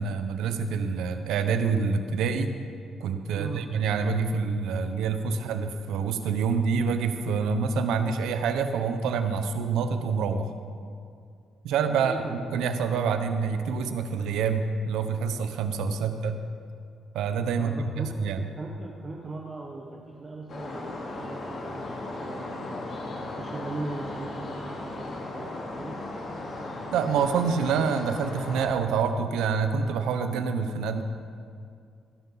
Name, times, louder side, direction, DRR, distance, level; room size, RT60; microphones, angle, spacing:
voice 1, 0.0-2.5 3.0-10.5 11.6-16.4 17.1-18.4 26.9-31.0, right 5 dB, 85° right, 8 dB, 0.9 m, -27 dB
voice 2, 3.3-3.7 4.8-4.9 12.0-12.3 16.0-16.2 17.6-18.3 18.6-21.8 22.2-22.7 23.4-26.1, right 2 dB, 35° right, -1 dB, 1.4 m, -39 dB
sound 1, 20.5-28.7, left 2 dB, 55° left, 2.7 m, -36 dB
17.0 x 11.5 x 4.0 m, 2.3 s
cardioid pair, 90°, 0 cm